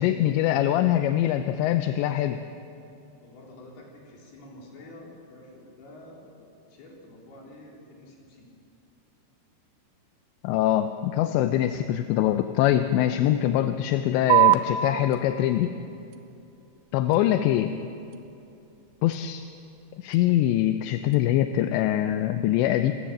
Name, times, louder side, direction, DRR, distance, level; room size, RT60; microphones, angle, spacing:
voice 1, 0.0-2.4 10.4-15.7 16.9-17.7 19.0-19.4 20.0-22.9, left 12 dB, 85° left, 9 dB, 2.9 m, -23 dB
voice 2, 3.2-8.5 17.1-17.4, left 1 dB, 60° left, -2 dB, 5.7 m, -48 dB
sound 1, 14.3-21.3, right 14 dB, 80° right, 3.2 m, -29 dB
28.5 x 14.0 x 7.6 m, 2.7 s
omnidirectional pair, 5.1 m